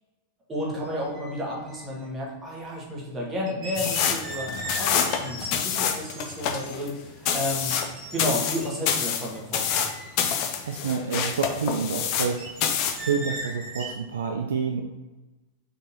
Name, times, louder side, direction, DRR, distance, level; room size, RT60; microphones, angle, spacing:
voice 1, 0.5-7.7 8.1-9.8, left 1 dB, 20° right, -3 dB, 1.3 m, -32 dB
sound 1, 0.8-0.9 1.1-2.1 3.4-6.7 7.3-8.8 9.3-9.4 9.7-10.7 12.4-13.9, right 1 dB, 35° right, 0.9 m, -38 dB
sound 2, 3.7-12.3 12.6-13.0, left 8 dB, 45° left, 0.5 m, -27 dB
voice 2, 10.7-12.4 13.0-14.8, right 6 dB, 65° right, 4 dB, 0.3 m, -28 dB
3.9 x 3.4 x 2.7 m, 1.1 s
figure-of-eight pair, 90°, 0 cm